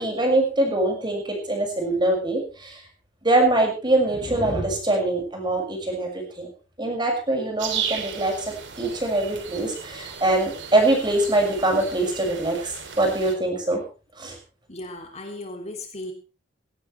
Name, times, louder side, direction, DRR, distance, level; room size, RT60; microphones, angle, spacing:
voice 1, 0.0-2.8 3.2-6.1 6.4-6.5 6.8-13.8 14.2-14.4, right 2 dB, 25° right, 2 dB, 6.3 m, -23 dB
sound 1, 7.6-13.4, right 7 dB, 80° right, 3.3 m, -35 dB
voice 2, 14.7-16.1, left 1 dB, 35° left, 3 dB, 3.1 m, -36 dB
18.5 x 17.5 x 3.4 m, 0.34 s
head